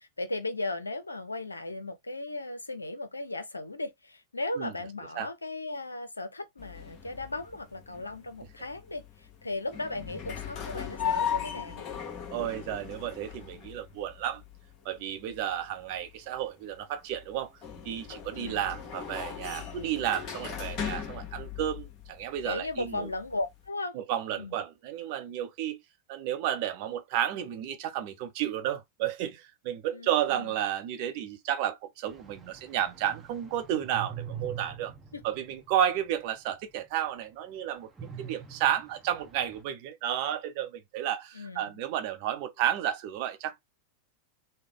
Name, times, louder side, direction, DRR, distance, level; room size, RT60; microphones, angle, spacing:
voice 1, 0.0-11.8 18.3-18.6 22.4-24.0 24.3-24.6 29.9-30.5 35.1-35.2 41.3-41.7, left 2 dB, 80° left, 0.5 m, -36 dB
sound 1, 6.6-23.6, left 8 dB, 35° left, 1.1 m, -38 dB
voice 2, 12.3-14.4 14.8-17.5 17.8-23.1 23.9-25.8 26.1-34.9 35.2-37.9 38.2-43.6, right 11 dB, 45° right, 0.7 m, -32 dB
sound 2, 32.1-36.4 36.7-36.9 37.9-39.6, right 8 dB, 15° right, 0.8 m, -44 dB
3.2 x 2.1 x 3.6 m
figure-of-eight pair, 90°, 0 cm